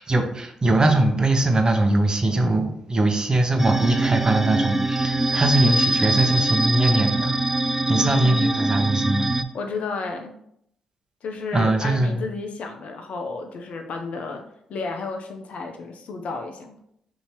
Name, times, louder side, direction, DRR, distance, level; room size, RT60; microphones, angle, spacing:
voice 1, 0.0-7.4 7.9-9.3 11.5-12.2, right 2 dB, 30° right, 4 dB, 0.8 m, -21 dB
sound 1, 3.6-9.4, right 2 dB, 15° right, 0.3 m, -23 dB
voice 2, 7.9-8.5 9.5-10.3 11.2-14.4 14.7-16.8, left 4 dB, 60° left, 4 dB, 0.5 m, -32 dB
5.4 x 2.7 x 2.9 m, 0.72 s
hypercardioid pair, 40°, 2 cm